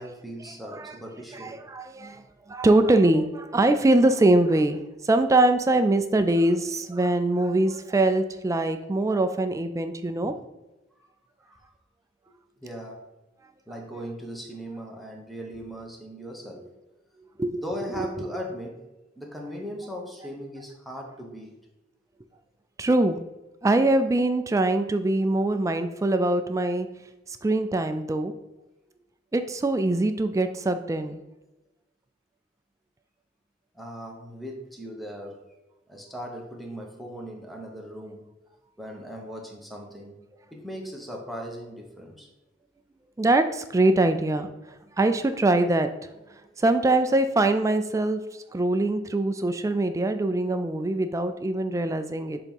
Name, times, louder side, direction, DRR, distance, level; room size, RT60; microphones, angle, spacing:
voice 1, 0.0-1.6 11.0-11.1 11.4-11.7 12.6-13.0 13.7-16.7 17.6-18.8 19.2-21.5 33.7-35.4 35.9-38.3 38.8-40.2 40.5-42.3, equal, ahead, -1 dB, 0.9 m, -38 dB
voice 2, 1.3-2.2 2.5-10.3 17.4-17.6 18.0-18.1 22.8-23.2 23.6-26.9 27.3-28.3 29.3-31.2 43.2-44.5 45.0-45.9 46.6-52.4, right 2 dB, 15° right, 9 dB, 0.3 m, -23 dB
6.8 x 2.9 x 5.2 m, 1.0 s
head